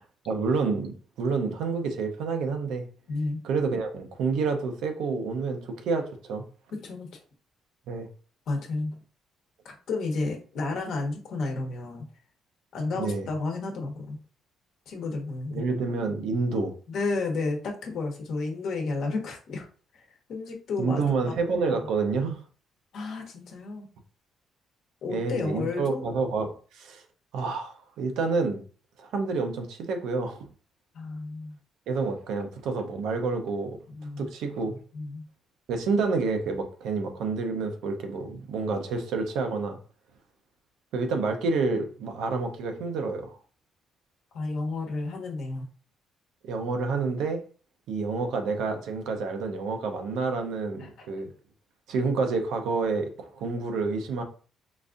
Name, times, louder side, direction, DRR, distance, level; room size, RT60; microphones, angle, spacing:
voice 1, 0.3-2.9 3.4-6.4 7.9-8.1 12.9-13.3 15.5-16.7 20.8-22.4 25.1-27.0 27.3-28.6 29.0-30.4 31.9-33.8 34.2-34.8 35.7-39.8 40.9-43.4 46.4-47.4 47.9-51.3 51.9-54.2, right 4 dB, 80° right, 0.6 m, -28 dB
voice 2, 3.1-3.4 6.7-7.1 8.5-8.9 9.6-12.1 12.7-14.2 14.9-15.6 16.9-19.7 19.9-21.3 21.6-21.8 22.9-23.9 25.0-26.1 30.9-31.6 34.0-34.3 34.9-35.2 44.3-45.7 50.8-50.9, left 3 dB, 70° left, 0.9 m, -32 dB
3.9 x 2.5 x 2.4 m
cardioid pair, 85°, 0 cm